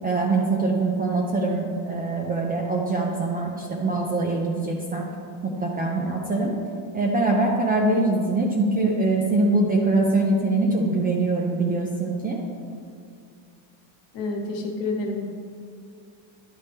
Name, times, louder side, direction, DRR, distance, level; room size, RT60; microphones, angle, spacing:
voice 1, 0.0-5.1 5.4-6.5 6.9-12.4, right 2 dB, 20° right, -1 dB, 0.3 m, -23 dB
voice 2, 14.1-15.2, left 3 dB, 60° left, 2 dB, 1.2 m, -28 dB
10.5 x 4.2 x 3.4 m, 2.2 s
cardioid pair, 150°, 49 cm